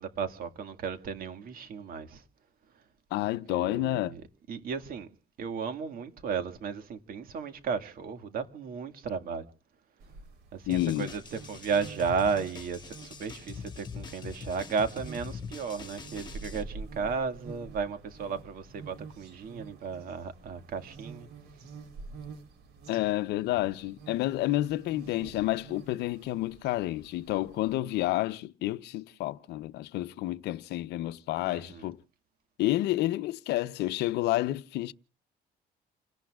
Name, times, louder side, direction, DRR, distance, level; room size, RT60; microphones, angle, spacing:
voice 1, 0.0-2.2 3.5-4.2 4.5-5.1 5.4-9.5 10.5-21.3 23.5-23.7 25.2-25.4 31.5-31.9, right 5 dB, 60° right, 1.9 m, -34 dB
voice 2, 3.1-4.1 10.7-11.1 22.9-32.0 32.6-34.9, left 16 dB, 80° left, 0.7 m, -30 dB
sound 1, 10.0-27.8, right 4 dB, 75° right, 3.7 m, -48 dB
sound 2, 10.7-16.6, left 6 dB, 25° left, 3.5 m, -43 dB
29.0 x 17.5 x 2.4 m
cardioid pair, 110°, 17 cm